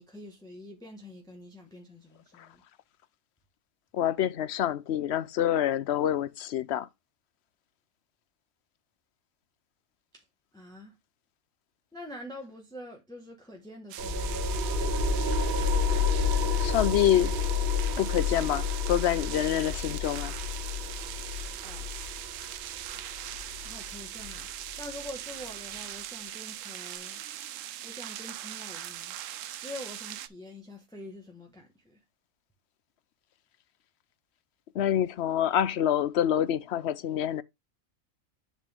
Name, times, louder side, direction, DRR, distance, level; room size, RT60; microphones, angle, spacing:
voice 1, 0.0-2.6 10.1-10.2 10.5-11.0 11.9-14.6 21.6-21.9 23.6-27.2 27.8-29.2 29.6-32.0, left 1 dB, 5° left, 1.3 m, -45 dB
voice 2, 3.9-6.9 16.6-17.3 18.0-20.3 34.7-37.4, left 10 dB, 60° left, 0.8 m, -26 dB
sound 1, 13.9-30.3, right 12 dB, 70° right, 0.9 m, -40 dB
sound 2, 14.0-25.0, left 4 dB, 35° right, 1.7 m, -30 dB
10.0 x 4.2 x 3.5 m
omnidirectional pair, 1.5 m